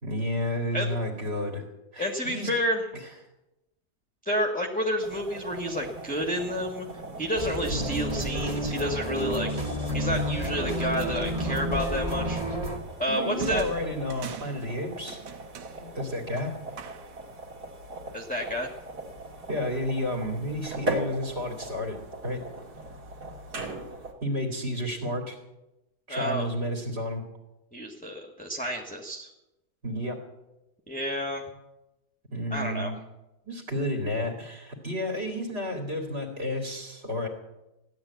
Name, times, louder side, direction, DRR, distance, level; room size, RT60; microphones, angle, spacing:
voice 1, 0.0-1.6 1.9-2.5 3.0-3.1 7.7-7.9 13.1-15.2 15.8-16.5 19.5-22.4 24.2-25.4 26.1-27.2 29.8-30.2 32.3-32.9 33.4-37.3, left 1 dB, 35° right, 1 dB, 2.8 m, -31 dB
voice 2, 2.0-2.9 4.2-6.9 7.2-9.5 9.9-12.4 13.0-13.6 18.1-18.7 26.1-26.5 27.7-29.3 30.9-31.4 32.5-32.9, equal, 5° left, 2 dB, 1.3 m, -30 dB
sound 1, 5.0-24.1, right 1 dB, 60° right, 2.8 m, -40 dB
sound 2, 7.4-12.8, equal, 20° right, 2.1 m, -30 dB
sound 3, 13.4-17.3, right 9 dB, 80° right, 1.5 m, -41 dB
15.5 x 11.0 x 8.2 m, 0.97 s
omnidirectional pair, 1.8 m